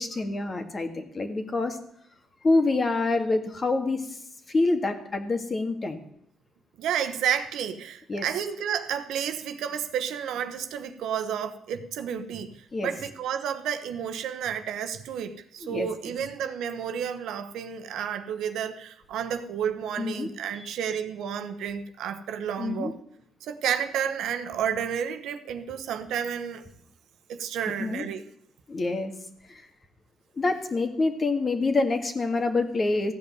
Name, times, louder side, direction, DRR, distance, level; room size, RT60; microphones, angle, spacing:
voice 1, 0.0-1.8 2.4-4.1 4.5-6.0 8.1-8.3 12.7-12.9 15.6-15.9 20.0-20.3 22.6-22.9 27.8-28.1 28.7-29.1 29.5-29.6 30.3-33.1, left 3 dB, 35° left, 6 dB, 2.0 m, -26 dB
voice 2, 6.8-22.9 23.4-26.6 27.3-28.2, right 8 dB, 80° right, 9 dB, 1.1 m, -31 dB
15.5 x 5.4 x 9.4 m, 0.74 s
cardioid pair, 90°, 0 cm